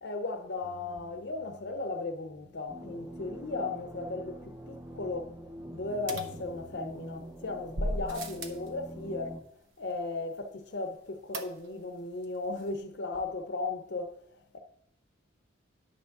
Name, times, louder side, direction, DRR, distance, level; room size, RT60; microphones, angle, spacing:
voice 1, 0.0-5.4 5.7-9.3 9.8-14.2 14.5-14.6, left 3 dB, 55° left, 0.6 m, -36 dB
sound 1, 0.6-9.4, right 1 dB, 10° right, 0.5 m, -46 dB
sound 2, 6.1-7.1 7.7-8.7 11.3-11.9 12.2-12.3 12.6-12.7, right 1 dB, 75° right, 0.8 m, -36 dB
9.8 x 3.5 x 6.4 m
head